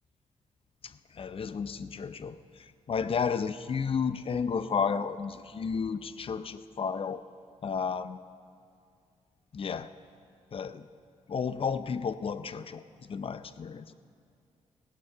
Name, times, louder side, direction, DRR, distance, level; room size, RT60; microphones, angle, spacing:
voice 1, 1.2-2.4 2.9-7.2 7.6-8.2 9.5-9.9 10.5-10.8 11.3-12.8 13.1-13.9, left 6 dB, 50° left, 13 dB, 0.6 m, -32 dB
16.0 x 9.5 x 6.8 m, 2.3 s
cardioid pair, 80°, 13 cm